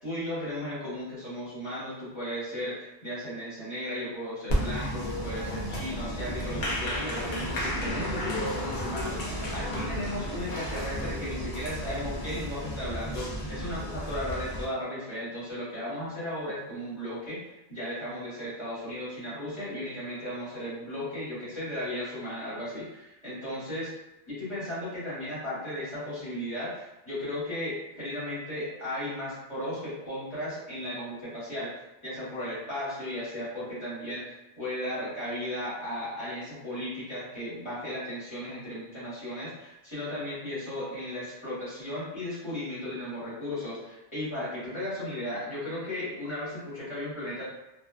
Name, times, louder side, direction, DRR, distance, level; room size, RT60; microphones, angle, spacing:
voice 1, 0.0-23.9 24.3-31.7 32.0-47.4, left 1 dB, 30° left, -12 dB, 1.3 m, -35 dB
Applause, 4.5-14.6, equal, 55° left, 0.8 m, -33 dB
2.5 x 2.4 x 2.3 m, 0.97 s
omnidirectional pair, 1.1 m